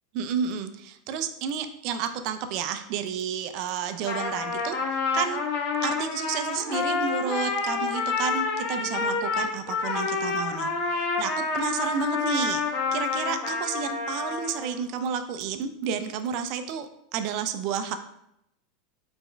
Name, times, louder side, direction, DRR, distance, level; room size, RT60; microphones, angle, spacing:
voice 1, 0.1-4.8 5.1-5.4 5.8-11.3 11.5-18.0, right 7 dB, 55° right, 9 dB, 0.4 m, -31 dB
Trumpet, 3.9-14.7, left 4 dB, 60° left, 0.8 m, -28 dB
4.2 x 3.4 x 3.3 m, 0.78 s
hypercardioid pair, 110°, 0 cm